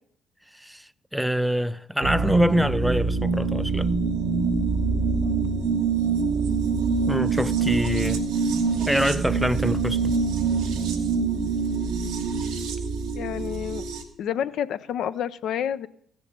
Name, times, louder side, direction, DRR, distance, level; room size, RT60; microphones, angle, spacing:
voice 1, 0.5-3.9 7.1-8.2 8.9-10.1, equal, ahead, 0.3 m, -25 dB
sound 1, 2.0-14.0, right 4 dB, 85° right, 1.3 m, -25 dB
voice 2, 13.2-13.9 14.2-15.9, left 9 dB, 70° left, 0.5 m, -29 dB
15.0 x 7.0 x 5.3 m
supercardioid pair, 65°, 0 cm